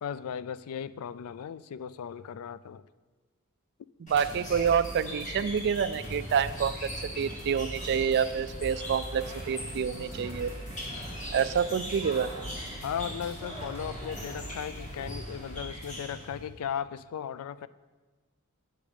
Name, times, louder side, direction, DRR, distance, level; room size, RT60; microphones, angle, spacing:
voice 1, 0.0-2.8 12.8-17.7, left 8 dB, 75° left, 15 dB, 0.3 m, -36 dB
sound 1, 4.1-16.5, equal, 35° left, 1.4 m, -40 dB
sound 2, 4.1-15.2, right 1 dB, 10° left, 1.3 m, -45 dB
voice 2, 4.1-6.7 7.2-10.5 11.3-12.4, right 7 dB, 50° right, 14 dB, 0.3 m, -27 dB
8.5 x 6.2 x 5.0 m, 1.3 s
head